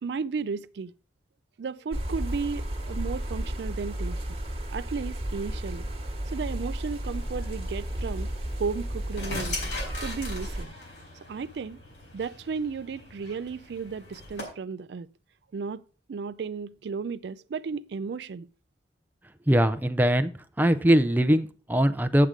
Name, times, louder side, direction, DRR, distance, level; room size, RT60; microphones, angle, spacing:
voice 1, 0.0-0.9 1.6-4.2 4.7-5.9 6.3-8.3 8.6-9.6 10.0-10.7 11.3-11.8 12.1-15.1 15.5-15.8 16.1-18.5, right 5 dB, 65° right, 0.4 m, -34 dB
sound 1, 1.9-10.6, right 1 dB, 35° right, 1.4 m, -33 dB
sound 2, 7.1-14.4, left 2 dB, 90° left, 4.3 m, -40 dB
voice 2, 19.5-20.3 20.6-22.3, equal, 10° right, 0.5 m, -21 dB
8.1 x 7.5 x 5.0 m
head